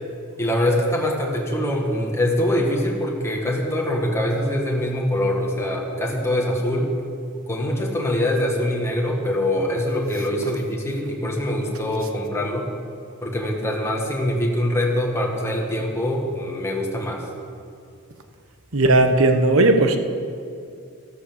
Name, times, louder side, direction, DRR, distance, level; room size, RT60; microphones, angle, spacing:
voice 1, 0.4-6.9 7.3-12.7 13.2-17.2, left 1 dB, 10° left, -1 dB, 1.9 m, -23 dB
voice 2, 18.7-20.0, right 2 dB, 65° right, 7 dB, 1.2 m, -16 dB
13.0 x 12.0 x 7.1 m, 2.4 s
head